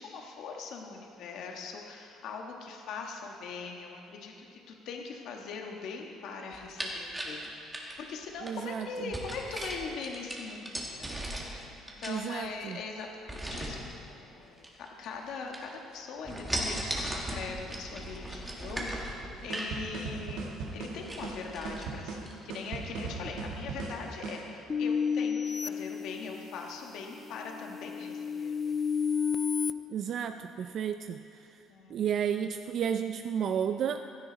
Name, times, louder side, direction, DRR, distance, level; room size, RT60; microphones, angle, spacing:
voice 1, 0.0-13.1 13.5-28.8 31.7-32.0, left 4 dB, 65° left, 1 dB, 1.6 m, -41 dB
sound 1, 6.5-8.5 9.1-11.6 11.9-12.7 13.3-13.8 14.6-15.3 15.5-15.9 16.2-19.8 20.2-20.3 20.7-20.8 21.0-21.9 22.3-22.4, right 1 dB, 10° right, 1.8 m, -37 dB
voice 2, 8.4-9.1 12.1-12.8 29.9-31.6 31.9-34.1, right 8 dB, 50° right, 8 dB, 0.4 m, -32 dB
sound 2, 19.5-24.5, right 4 dB, 80° right, 1.9 m, -38 dB
sound 3, 24.7-26.7 27.2-29.7, left 6 dB, 20° left, 0.4 m, -31 dB
16.0 x 12.5 x 4.0 m, 2.6 s
cardioid pair, 145°, 0 cm